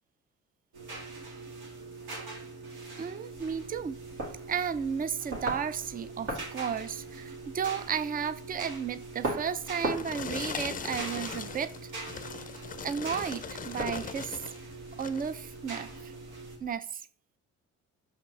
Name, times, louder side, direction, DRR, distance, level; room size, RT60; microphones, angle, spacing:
sound 1, 0.7-16.6, right 3 dB, 85° right, 1.8 m, -43 dB
voice 1, 3.0-4.0 4.5-11.9 12.8-14.4 15.0-16.1 16.6-17.0, right 7 dB, 30° right, 15 dB, 0.4 m, -33 dB
sound 2, 3.3-16.7, right 1 dB, 50° right, 2.0 m, -42 dB
sound 3, 9.5-14.6 14.9-15.3 15.9-16.1, left 6 dB, 30° left, 0.5 m, -40 dB
6.2 x 5.9 x 3.2 m, 0.44 s
cardioid pair, 90°, 30 cm